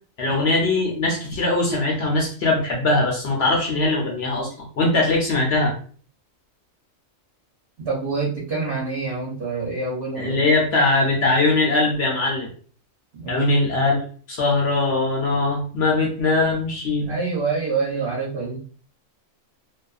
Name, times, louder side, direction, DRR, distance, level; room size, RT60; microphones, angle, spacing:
voice 1, 0.2-5.7 10.2-12.5 13.3-14.0 14.3-17.1, left 2 dB, 60° left, -1 dB, 0.8 m, -21 dB
voice 2, 7.8-10.4 13.1-13.6 17.0-18.6, right 4 dB, 50° right, -5 dB, 0.9 m, -26 dB
2.5 x 2.3 x 2.3 m, 0.43 s
omnidirectional pair, 1.4 m